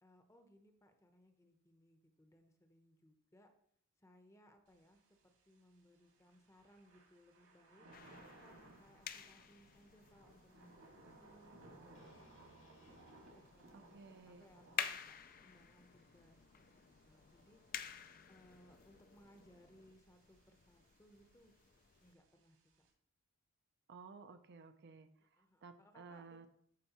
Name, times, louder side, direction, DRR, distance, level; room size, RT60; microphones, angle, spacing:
voice 1, 0.0-3.5 4.0-7.9 8.4-12.9 13.3-16.7 17.0-17.6 18.3-21.5 22.0-22.9 25.4-26.5, equal, 15° left, 6 dB, 0.8 m, -66 dB
Thunder / Rain, 4.7-22.9, right 2 dB, 75° right, 2.2 m, -64 dB
sound 1, 7.9-22.1, left 8 dB, 40° left, 0.4 m, -51 dB
sound 2, 11.9-16.1, left 1 dB, 65° left, 1.7 m, -70 dB
voice 2, 13.9-14.4 23.9-26.5, right 4 dB, 50° right, 8 dB, 0.5 m, -56 dB
13.5 x 4.5 x 3.0 m, 0.67 s
head